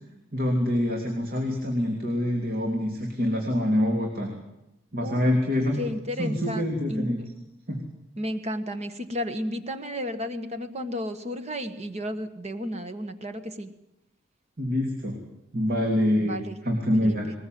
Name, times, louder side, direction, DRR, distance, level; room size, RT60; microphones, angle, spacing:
voice 1, 0.3-4.3 4.9-5.8 6.2-7.2 7.7-7.8 14.6-15.2 15.5-17.3, left 1 dB, 50° right, 1 dB, 3.3 m, -25 dB
voice 2, 5.8-7.3 8.2-13.7 16.2-16.6 16.9-17.2, equal, 35° right, 9 dB, 1.5 m, -33 dB
21.0 x 20.0 x 7.7 m, 0.90 s
head